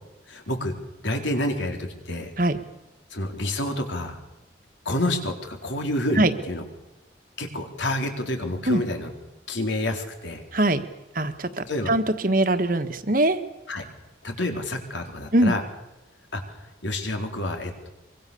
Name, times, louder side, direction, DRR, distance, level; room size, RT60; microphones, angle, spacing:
voice 1, 0.3-0.8 1.0-2.3 3.1-4.2 4.9-6.6 7.4-9.1 9.5-10.4 11.7-11.9 13.7-13.9 14.2-15.6 16.3-17.9, left 1 dB, 75° left, 4 dB, 4.0 m, -28 dB
voice 2, 10.5-10.8 11.1-13.4 15.3-15.5, right 1 dB, 45° right, 9 dB, 1.6 m, -22 dB
24.5 x 24.5 x 7.0 m, 1.0 s
head